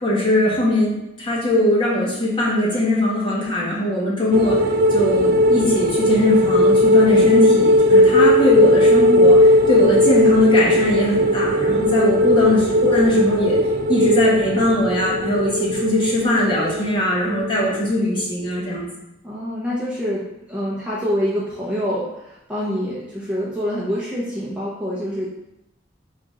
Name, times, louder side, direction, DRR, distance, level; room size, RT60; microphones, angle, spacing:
voice 1, 0.0-4.5 4.9-13.6 13.9-18.9, left 1 dB, 25° left, -6 dB, 1.2 m, -20 dB
sound 1, 4.3-17.7 18.0-18.2, equal, 50° right, 0.4 m, -17 dB
voice 2, 11.9-12.4 19.2-20.2 20.5-25.3, equal, 5° right, -8 dB, 0.7 m, -26 dB
3.8 x 3.4 x 3.7 m, 0.86 s
head